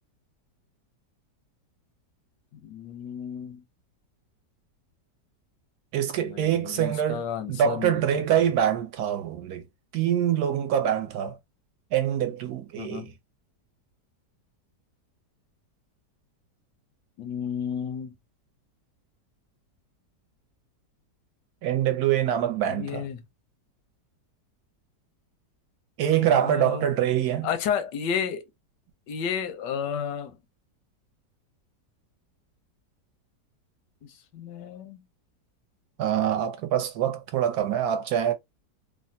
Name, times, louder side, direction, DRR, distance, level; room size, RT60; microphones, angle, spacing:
voice 1, 2.6-3.6 6.2-8.0 12.8-13.1 17.2-18.1 22.7-23.2 26.1-26.8 27.4-28.4 29.1-30.4 34.3-35.0, left 7 dB, 85° left, 1.3 m, -32 dB
voice 2, 5.9-7.2 7.5-9.6 9.9-11.4 11.9-13.1 21.6-23.1 26.0-27.5 36.0-38.3, right 10 dB, 70° right, 1.1 m, -25 dB
3.3 x 2.1 x 2.6 m
omnidirectional pair, 1.8 m